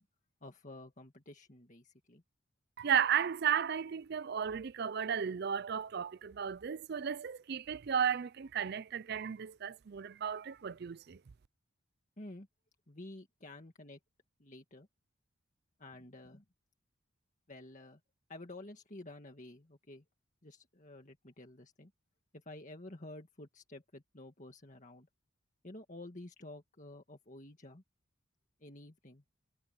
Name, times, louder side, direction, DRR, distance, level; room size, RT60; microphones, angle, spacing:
voice 1, 0.4-2.2 12.2-12.5 12.9-14.0 14.4-14.9 15.8-16.4 17.5-18.0 18.3-20.0 20.4-21.9 22.3-25.1 25.6-27.8 28.6-29.2, left 2 dB, 35° left, 1.9 m, -51 dB
voice 2, 2.8-11.2, right 8 dB, 50° right, 0.4 m, -34 dB
head